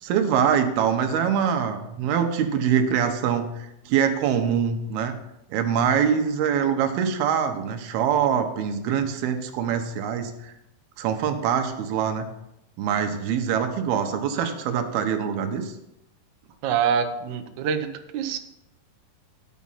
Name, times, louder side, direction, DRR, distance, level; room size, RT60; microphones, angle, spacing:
voice 1, 0.0-5.1 5.5-10.5 11.0-12.3 12.8-15.7, right 8 dB, 85° right, 6 dB, 2.9 m, -24 dB
voice 2, 16.6-17.9 18.1-18.4, right 7 dB, 70° right, 5 dB, 1.9 m, -25 dB
11.5 x 6.3 x 5.6 m, 0.85 s
omnidirectional pair, 4.3 m